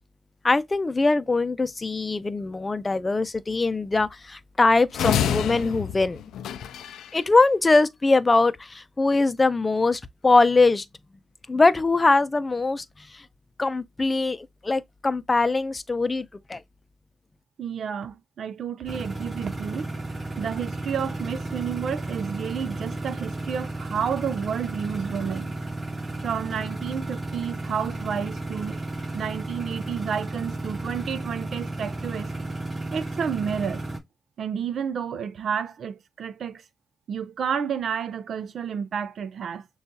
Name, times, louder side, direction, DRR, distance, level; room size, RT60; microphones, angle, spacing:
voice 1, 0.4-6.2 7.1-10.8 11.5-12.8 13.1-13.2 13.6-16.6, left 3 dB, 30° left, 0.5 m, -22 dB
sound 1, 4.9-7.2, left 9 dB, 90° left, 0.3 m, -27 dB
voice 2, 17.6-20.1 20.4-25.5 26.2-28.8 29.1-32.3 32.9-33.8 34.4-36.6 37.1-39.7, right 7 dB, 70° right, 0.5 m, -30 dB
sound 2, 18.9-34.0, right 2 dB, 30° right, 2.4 m, -33 dB
6.7 x 2.4 x 2.7 m
cardioid pair, 75°, 0 cm